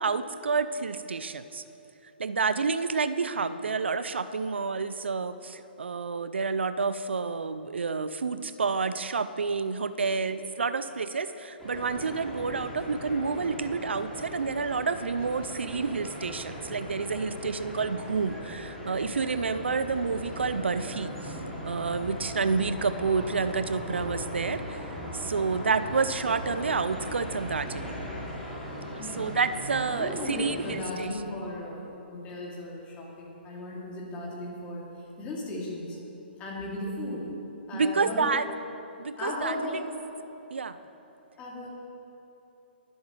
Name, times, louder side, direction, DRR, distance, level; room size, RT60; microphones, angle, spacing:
voice 1, 0.0-1.6 2.2-21.4 21.7-27.9 29.2-31.1 37.7-38.5 39.0-39.9 40.5-40.8, right 4 dB, 80° right, 12 dB, 0.5 m, -29 dB
sound 1, 11.6-30.8, equal, 5° left, 2.8 m, -39 dB
voice 2, 29.0-29.3 29.9-34.8 35.2-36.0 36.4-37.3 37.7-38.3 39.2-39.8 41.4-41.7, left 1 dB, 25° left, -4 dB, 2.8 m, -36 dB
21.0 x 8.0 x 3.3 m, 3.0 s
hypercardioid pair, 135°, 6 cm